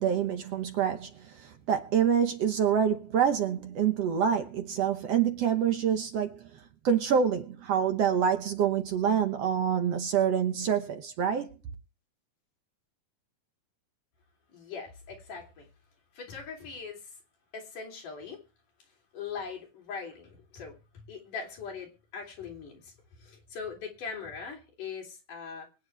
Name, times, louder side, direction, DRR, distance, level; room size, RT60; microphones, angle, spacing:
voice 1, 0.0-11.6, right 8 dB, 60° right, 1.8 m, -27 dB
voice 2, 14.5-15.7 16.1-17.1 17.5-18.4 19.1-22.9 23.2-25.7, left 5 dB, 75° left, 5.0 m, -41 dB
23.5 x 9.4 x 3.4 m
omnidirectional pair, 3.7 m